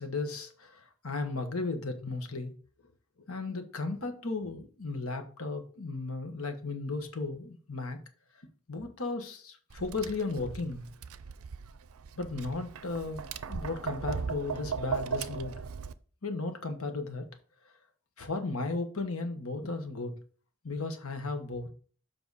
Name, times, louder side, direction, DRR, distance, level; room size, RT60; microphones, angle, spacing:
voice 1, 0.0-2.5 3.3-8.0 8.7-10.8 12.2-15.5 16.2-17.3 18.2-20.2 20.6-21.7, left 3 dB, 70° left, 1.3 m, -35 dB
Tap, 9.7-15.9, right 6 dB, 75° right, 0.5 m, -38 dB
7.4 x 5.6 x 4.1 m
head